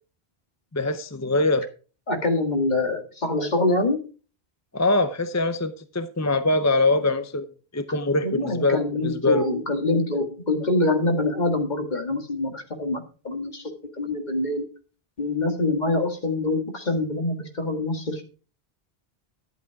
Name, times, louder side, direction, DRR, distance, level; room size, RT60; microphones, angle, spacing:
voice 1, 0.7-1.7 4.7-7.5 7.7-9.5, left 2 dB, 20° left, 0.6 m, -23 dB
voice 2, 2.1-4.0 8.2-14.7 15.2-18.2, left 2 dB, 45° left, 2.0 m, -25 dB
12.0 x 8.0 x 4.7 m
omnidirectional pair, 1.1 m